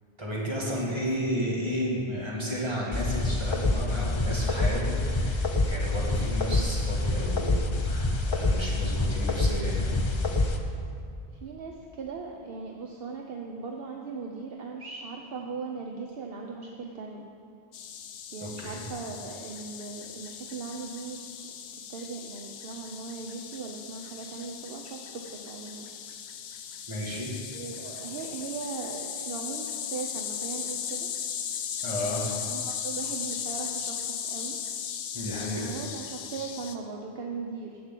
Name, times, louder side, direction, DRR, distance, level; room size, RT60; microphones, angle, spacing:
voice 1, 0.2-10.0 18.4-18.8 26.9-27.3 31.8-32.3 35.1-35.7, equal, 25° right, -5 dB, 2.0 m, -32 dB
sound 1, 2.9-10.6, left 2 dB, 35° left, 0.6 m, -27 dB
voice 2, 11.3-17.3 18.3-21.2 21.9-25.9 27.5-31.1 32.2-34.6 35.6-37.8, right 4 dB, 65° right, 1 dB, 0.9 m, -38 dB
sound 2, 17.7-36.8, left 8 dB, 85° left, 0.9 m, -37 dB
7.8 x 7.2 x 7.5 m, 2.4 s
omnidirectional pair, 1.1 m